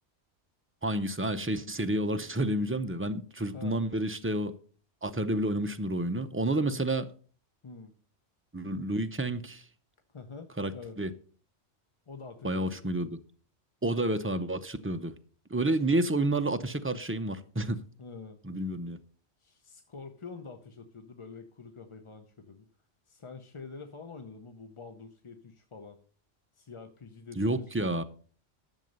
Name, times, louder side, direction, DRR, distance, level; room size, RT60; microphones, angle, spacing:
voice 1, 0.8-4.6 5.0-7.1 8.5-9.7 10.6-11.1 12.4-13.2 13.8-15.1 15.5-17.8 18.4-19.0 27.4-28.0, right 1 dB, 15° right, 0.5 m, -30 dB
voice 2, 10.1-11.0 12.1-12.9 15.7-15.8 18.0-18.4 19.4-22.7 23.1-26.0 26.5-27.9, left 4 dB, 30° left, 0.6 m, -46 dB
11.0 x 7.2 x 5.3 m
omnidirectional pair, 1.2 m